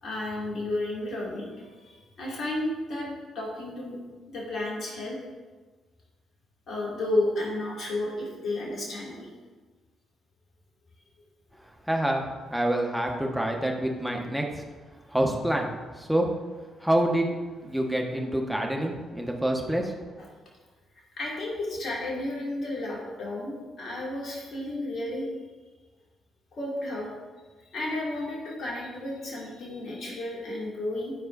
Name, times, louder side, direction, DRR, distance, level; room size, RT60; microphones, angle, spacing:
voice 1, 0.0-3.1 3.3-4.0 4.3-5.2 6.7-9.3 21.2-25.3 26.5-27.1 27.7-31.1, left 1 dB, 55° left, -4 dB, 2.3 m, -32 dB
voice 2, 11.6-14.6 15.1-16.3 16.8-17.3 17.6-19.9, right 1 dB, 5° right, 1 dB, 1.3 m, -27 dB
13.5 x 4.6 x 2.6 m, 1.4 s
figure-of-eight pair, 45°, 0 cm